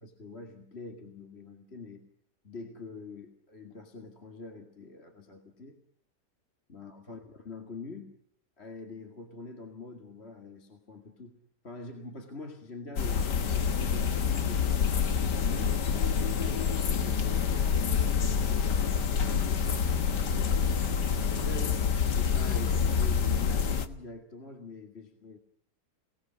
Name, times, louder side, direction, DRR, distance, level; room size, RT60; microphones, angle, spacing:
voice 1, 0.0-2.0 2.4-5.8 6.7-8.1 8.6-11.4 11.6-15.7 16.4-18.9 19.3-20.6 21.3-25.4, left 3 dB, 35° left, 4 dB, 2.5 m, -45 dB
sound 1, 13.0-23.9, left 6 dB, 70° left, 2.1 m, -27 dB
29.0 x 19.0 x 7.6 m, 0.67 s
omnidirectional pair, 1.9 m